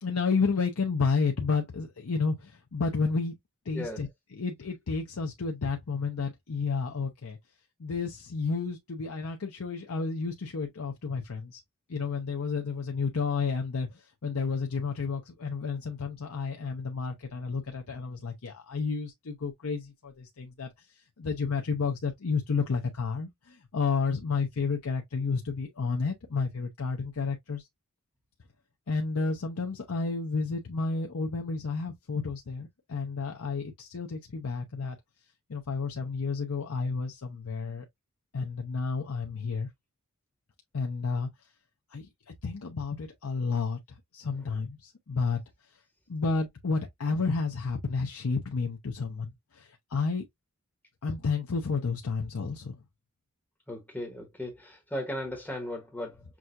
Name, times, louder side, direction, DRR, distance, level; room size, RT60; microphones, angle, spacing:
voice 1, 0.0-3.3 3.7-7.4 7.8-11.6 11.9-20.7 21.2-27.7 28.9-35.0 35.5-37.8 38.3-39.7 40.7-41.3 41.9-42.1 42.4-45.4 46.1-50.3 51.0-52.8, left 4 dB, 85° left, 0.7 m, -31 dB
voice 2, 3.7-4.1 53.7-56.2, left 1 dB, 5° left, 1.0 m, -36 dB
6.0 x 2.3 x 2.5 m
head